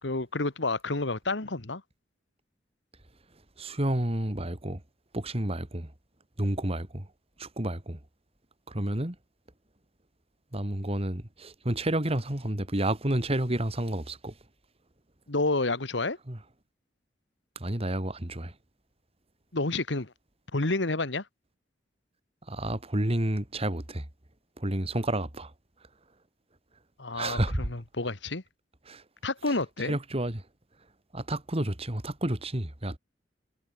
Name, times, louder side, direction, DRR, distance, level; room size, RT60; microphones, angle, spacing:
voice 1, 0.0-1.8 15.3-16.2 19.5-20.1 20.5-21.2 27.0-28.4 29.2-30.0, left 2 dB, 75° left, 1.8 m, -29 dB
voice 2, 3.6-4.8 5.1-5.9 6.4-7.1 7.4-8.0 8.7-9.2 10.5-14.3 16.3-16.4 17.6-18.5 22.5-24.0 24.6-25.5 27.1-27.7 28.9-29.0 29.9-30.4 31.1-33.0, right 1 dB, 35° right, 2.6 m, -30 dB
head